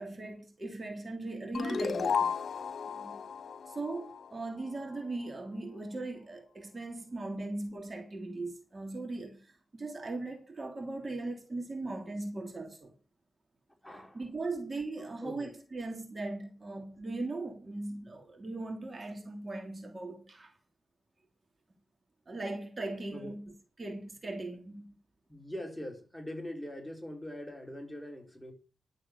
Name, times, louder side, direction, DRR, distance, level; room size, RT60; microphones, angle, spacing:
voice 1, 0.0-2.3 2.9-3.1 3.7-12.9 14.1-20.5 22.3-23.5 23.8-24.9, right 2 dB, 40° right, 3.0 m, -39 dB
sound 1, 1.5-4.8, left 6 dB, 70° left, 1.4 m, -34 dB
voice 2, 13.8-14.2 15.0-15.5 23.1-23.3 25.3-28.5, equal, 5° left, 4.2 m, -42 dB
12.0 x 7.4 x 6.8 m
cardioid pair, 60°, 0 cm